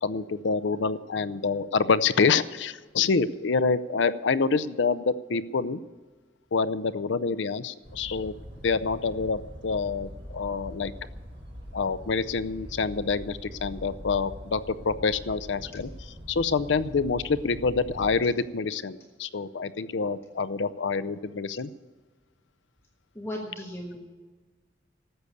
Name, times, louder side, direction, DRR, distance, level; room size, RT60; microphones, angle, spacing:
voice 1, 0.0-5.8 6.5-8.3 8.6-10.9 11.7-21.7, left 4 dB, 80° left, 15 dB, 0.6 m, -27 dB
sound 1, 7.8-18.2, equal, 75° right, 5.0 m, -43 dB
voice 2, 23.1-24.0, left 1 dB, 15° left, -1 dB, 1.4 m, -36 dB
13.5 x 8.0 x 8.5 m, 1.4 s
head